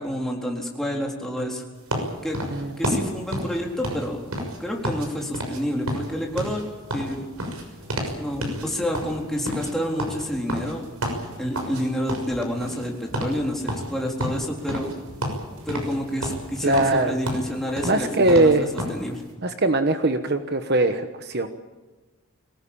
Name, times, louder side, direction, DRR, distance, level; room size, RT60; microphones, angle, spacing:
voice 1, 0.0-1.6 2.2-2.4 2.8-4.2 4.6-6.6 6.9-7.3 8.1-10.9 11.4-15.0 15.7-18.5 18.9-19.2, equal, ahead, -1 dB, 3.9 m, -28 dB
sound 1, 1.9-5.1 5.3-5.6 5.9-8.2 8.4-8.7 8.9-11.8 12.1-12.9 13.1-13.4 13.7-15.0 15.2-16.0 16.2-19.0, equal, 80° right, 6.3 m, -30 dB
sound 2, 7.6-16.9, equal, 60° right, 6.7 m, -47 dB
voice 2, 16.6-17.2 17.8-18.7 19.4-21.5, right 2 dB, 45° right, 8 dB, 1.2 m, -21 dB
24.0 x 18.5 x 8.7 m, 1.3 s
head